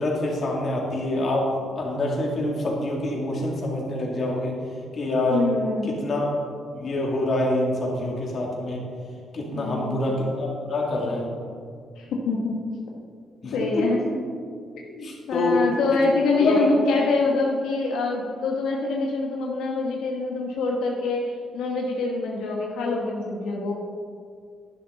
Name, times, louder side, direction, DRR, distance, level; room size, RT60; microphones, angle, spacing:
voice 1, 0.0-4.6 4.9-5.4 5.8-6.4 6.7-8.8 9.3-11.3 13.4-14.2 15.0-15.6 15.9-16.0 16.3-16.9, left 1 dB, 50° left, -2 dB, 2.7 m, -26 dB
voice 2, 5.3-5.9 9.5-9.9 12.0-12.6 13.5-14.0 15.0-23.7, left 3 dB, 90° left, -1 dB, 1.2 m, -25 dB
11.5 x 11.0 x 4.1 m, 2.2 s
cardioid pair, 110°, 0 cm